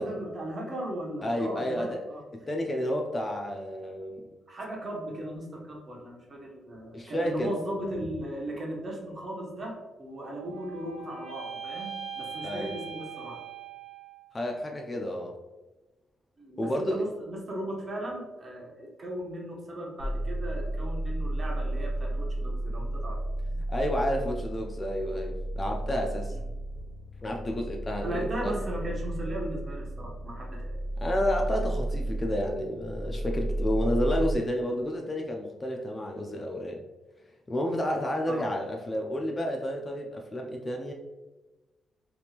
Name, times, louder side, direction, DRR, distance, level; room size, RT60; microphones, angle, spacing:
voice 1, 0.0-2.2 4.5-13.4 16.4-23.2 26.3-26.4 28.0-30.7 38.3-38.4, right 1 dB, 35° right, -1 dB, 0.8 m, -37 dB
voice 2, 1.2-2.0 2.3-4.3 6.9-7.5 12.4-12.8 14.3-15.3 16.6-17.0 23.5-26.4 27.2-28.5 31.0-36.8 37.5-40.9, equal, 20° left, 1 dB, 0.3 m, -30 dB
sound 1, 10.1-14.4, right 7 dB, 75° right, 1.0 m, -41 dB
sound 2, 20.0-34.3, right 1 dB, 60° left, 0.7 m, -33 dB
3.5 x 2.8 x 2.4 m, 1.1 s
cardioid pair, 140°, 0 cm